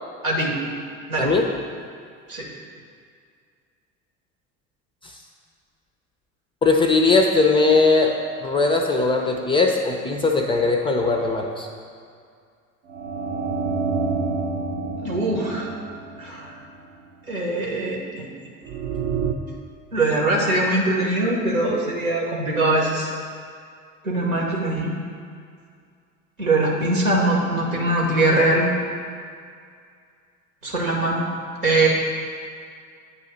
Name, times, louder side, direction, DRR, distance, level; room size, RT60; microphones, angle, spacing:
voice 1, 0.2-0.6 1.1-1.3 2.3-2.5 15.0-15.7 16.2-16.5 17.3-18.3 19.9-23.1 24.0-25.0 26.4-28.7 30.6-31.2 31.6-31.9, right 2 dB, 80° right, -2 dB, 1.2 m, -22 dB
voice 2, 6.6-8.1 8.4-11.7, left 3 dB, 15° left, 2 dB, 0.4 m, -19 dB
sound 1, 12.9-16.9 18.7-19.3, right 4 dB, 35° right, 0.7 m, -28 dB
8.0 x 2.8 x 6.1 m, 2.2 s
figure-of-eight pair, 60°, 41 cm